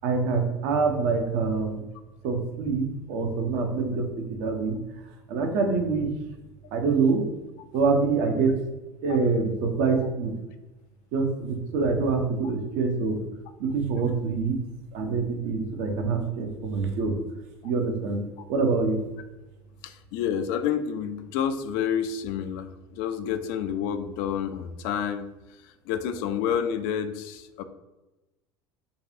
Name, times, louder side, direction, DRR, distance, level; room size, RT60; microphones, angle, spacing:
voice 1, 0.0-1.8 2.2-4.8 5.3-6.1 6.7-7.2 7.7-8.6 9.0-10.3 11.1-13.2 13.6-14.6 14.9-17.1 17.6-18.2 18.5-19.0, right 4 dB, 50° right, 3 dB, 0.7 m, -25 dB
voice 2, 19.8-25.3 25.6-27.6, left 8 dB, 50° left, 9 dB, 0.4 m, -29 dB
3.9 x 2.3 x 2.7 m, 1.1 s
figure-of-eight pair, 70°, 14 cm